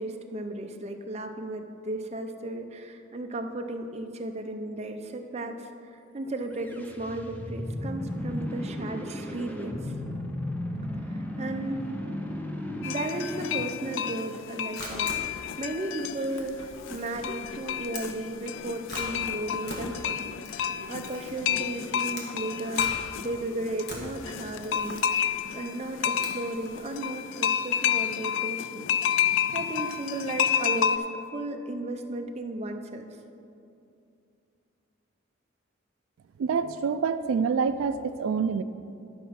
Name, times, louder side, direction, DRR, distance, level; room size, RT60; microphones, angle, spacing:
voice 1, 0.0-9.9 11.1-11.8 12.8-28.9 29.5-33.1, right 2 dB, 30° right, 5 dB, 0.6 m, -35 dB
sound 1, 6.5-14.6, left 1 dB, 10° left, 0.6 m, -35 dB
sound 2, 12.8-31.0, left 9 dB, 70° left, 0.3 m, -30 dB
Camera, 14.6-26.8, left 1 dB, 55° left, 1.6 m, -43 dB
voice 2, 36.4-38.6, right 5 dB, 80° right, 11 dB, 0.3 m, -26 dB
11.5 x 5.5 x 5.8 m, 2.6 s
head